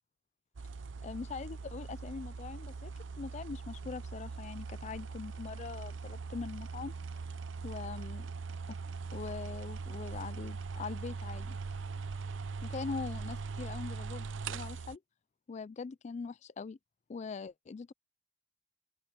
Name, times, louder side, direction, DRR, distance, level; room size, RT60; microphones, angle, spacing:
sound 1, 0.6-15.0, right 4 dB, 80° right, 0.6 m, -41 dB
voice 1, 1.0-6.9 7.6-8.3 9.1-11.6 12.6-15.0 15.5-16.8 17.1-17.9, left 5 dB, 35° left, 0.3 m, -42 dB
open air
head